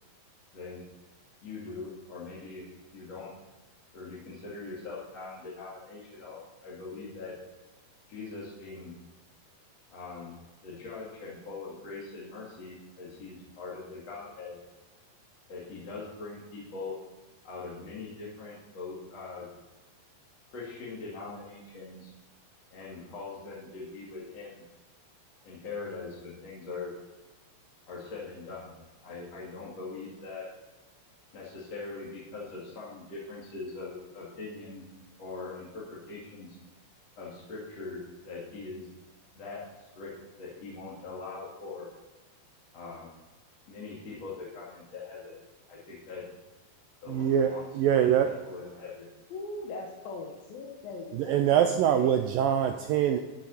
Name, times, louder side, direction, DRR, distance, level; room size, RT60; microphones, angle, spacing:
voice 1, 1.4-2.6 2.9-3.3 3.9-7.3 8.1-8.9 9.9-10.3 10.6-14.6 15.5-16.9 17.4-19.5 20.5-22.1 22.7-24.6 25.4-26.9 27.9-28.7 29.0-30.5 31.3-34.8 35.2-36.6 37.2-38.0 38.2-38.9 39.3-40.1 40.4-41.9 42.7-43.1 43.7-45.3 45.7-46.3 47.0-47.6 48.0-49.1, left 4 dB, 45° left, -7 dB, 3.3 m, -42 dB
voice 2, 47.1-48.3 51.1-53.2, right 9 dB, 85° right, 6 dB, 2.0 m, -24 dB
voice 3, 49.3-52.2, left 3 dB, 65° left, 0 dB, 2.9 m, -40 dB
12.5 x 10.5 x 4.3 m, 1.2 s
omnidirectional pair, 4.8 m